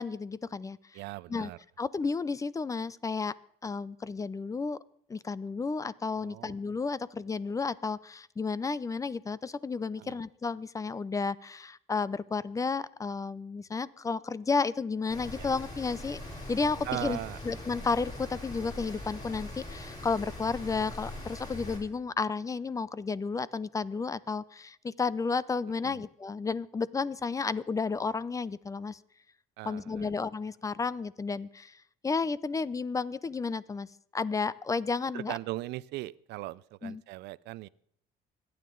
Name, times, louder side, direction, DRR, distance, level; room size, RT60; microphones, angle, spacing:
voice 1, 0.0-0.8 1.3-1.5 1.8-3.3 3.6-4.8 5.1-16.2 16.5-17.2 17.4-29.0 29.7-31.7 32.0-33.9 34.1-35.4 36.8-37.0, left 4 dB, 20° left, 20 dB, 0.5 m, -32 dB
voice 2, 0.9-1.6 6.2-6.6 10.0-10.2 15.3-15.5 16.8-17.4 25.8-26.0 29.6-30.1 35.1-37.7, right 18 dB, 80° right, 20 dB, 0.5 m, -39 dB
Rain, 15.1-21.8, left 1 dB, 45° left, 7.9 m, -42 dB
25.5 x 9.4 x 3.8 m, 0.69 s
cardioid pair, 110°, 17 cm